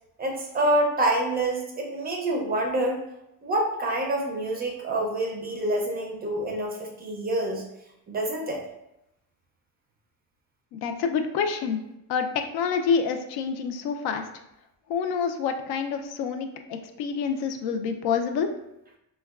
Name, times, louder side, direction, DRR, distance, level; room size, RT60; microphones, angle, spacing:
voice 1, 0.2-3.0 3.4-7.6 8.1-8.6, right 1 dB, 25° right, 0 dB, 0.4 m, -27 dB
voice 2, 10.7-11.8 12.1-14.3 14.9-18.5, left 6 dB, 80° left, 6 dB, 0.5 m, -27 dB
4.6 x 2.2 x 2.3 m, 0.85 s
cardioid pair, 165°, 38 cm